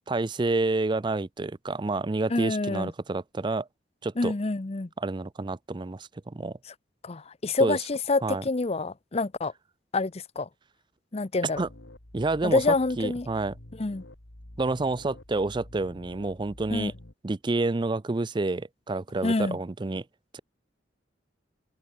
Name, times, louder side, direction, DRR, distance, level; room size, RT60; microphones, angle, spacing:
voice 1, 0.1-3.7 4.0-4.3 5.0-6.6 7.6-7.8 8.2-8.4 11.6-11.7 12.1-13.5 14.6-16.9 17.2-20.0 20.3-20.4, right 2 dB, 25° right, 0.5 m, -29 dB
voice 2, 2.3-2.9 4.2-4.9 7.0-9.5 9.9-10.5 11.1-11.7 12.4-13.3 13.8-14.0 16.7-16.9 19.2-19.6, left 3 dB, 35° left, 0.6 m, -27 dB
sound 1, 11.5-17.1, left 1 dB, 75° left, 3.1 m, -48 dB
head